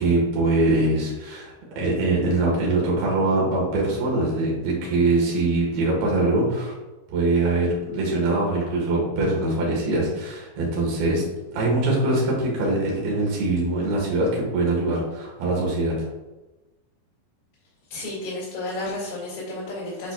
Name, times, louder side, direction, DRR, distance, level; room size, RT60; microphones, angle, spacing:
voice 1, 0.0-6.7 7.1-11.2 11.5-16.0, right 2 dB, 90° right, -3 dB, 3.6 m, -23 dB
voice 2, 17.9-20.1, left 2 dB, 85° left, -9 dB, 4.0 m, -32 dB
8.9 x 4.7 x 2.4 m, 1.1 s
omnidirectional pair, 4.2 m